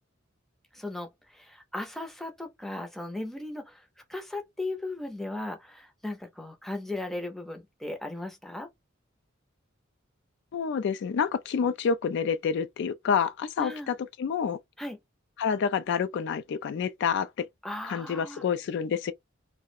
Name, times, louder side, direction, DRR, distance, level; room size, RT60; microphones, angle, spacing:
voice 1, 0.7-3.8 4.1-8.7 13.6-13.9 14.8-15.0 17.6-18.4, left 2 dB, ahead, 0.5 m, -37 dB
voice 2, 10.5-14.6 15.4-17.5 17.9-19.1, left 6 dB, 60° left, 0.3 m, -28 dB
2.3 x 2.0 x 2.7 m
head